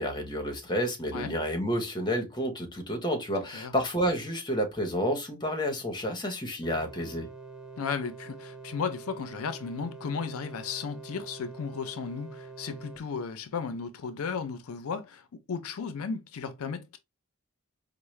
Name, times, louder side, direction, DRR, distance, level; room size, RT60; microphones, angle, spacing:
voice 1, 0.0-7.3, equal, 20° left, 0.9 m, -30 dB
sound 1, 6.6-13.0, right 4 dB, 5° right, 0.5 m, -45 dB
voice 2, 7.8-17.0, left 5 dB, 80° left, 0.5 m, -35 dB
4.5 x 2.1 x 3.1 m
head